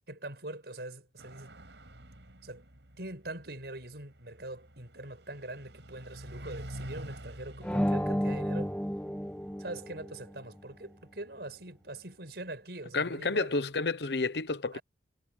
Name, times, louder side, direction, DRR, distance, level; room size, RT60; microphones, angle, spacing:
voice 1, 0.1-1.5 2.4-2.6 3.0-8.7 9.6-13.6 14.7-14.8, right 2 dB, 65° right, 7.1 m, -43 dB
sound 1, 1.2-12.1, right 1 dB, 90° right, 5.9 m, -49 dB
sound 2, 7.6-10.3, equal, 5° left, 2.0 m, -32 dB
voice 2, 12.9-14.8, left 3 dB, 70° left, 0.9 m, -30 dB
head